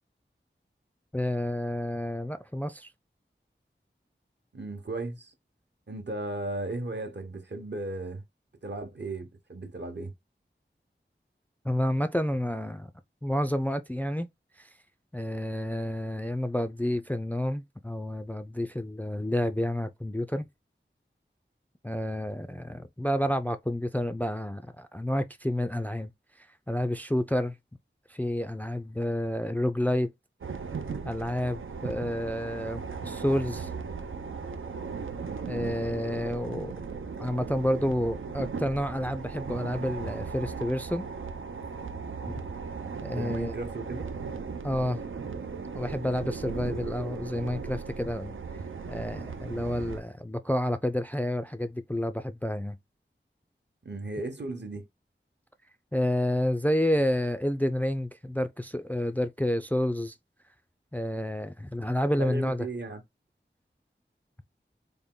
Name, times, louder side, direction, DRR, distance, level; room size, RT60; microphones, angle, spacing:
voice 1, 1.1-2.9 11.7-12.9 13.2-14.3 14.6-14.7 15.1-20.5 21.8-26.1 26.7-27.6 28.1-30.1 31.0-33.7 35.5-36.8 37.2-41.1 43.0-43.6 44.6-45.0 45.7-48.4 48.9-52.8 55.9-60.2 60.9-62.7, left 1 dB, 10° left, 0.3 m, -29 dB
voice 2, 4.5-5.3 5.9-8.2 8.6-10.1 43.1-44.1 53.8-54.9 62.2-63.0, right 2 dB, 60° right, 0.8 m, -35 dB
sound 1, 30.4-50.0, right 5 dB, 85° right, 0.5 m, -37 dB
3.5 x 2.2 x 3.6 m
wide cardioid pair, 45°, 20 cm